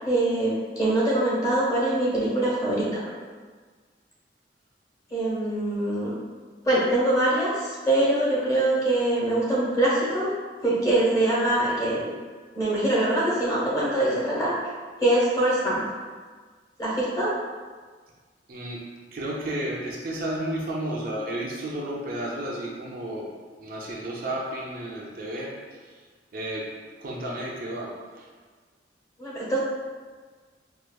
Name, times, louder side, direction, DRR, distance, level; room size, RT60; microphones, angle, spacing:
voice 1, 0.0-0.5 0.8-3.0 5.1-6.2 6.6-10.3 10.6-12.1 12.5-14.5 15.0-15.8 16.8-17.3 29.2-29.6, right 1 dB, 20° left, -7 dB, 1.0 m, -23 dB
voice 2, 18.5-18.8 19.1-23.3 23.6-26.7 27.0-28.3, right 1 dB, 50° right, -3 dB, 0.5 m, -32 dB
4.6 x 2.4 x 2.2 m, 1.5 s
head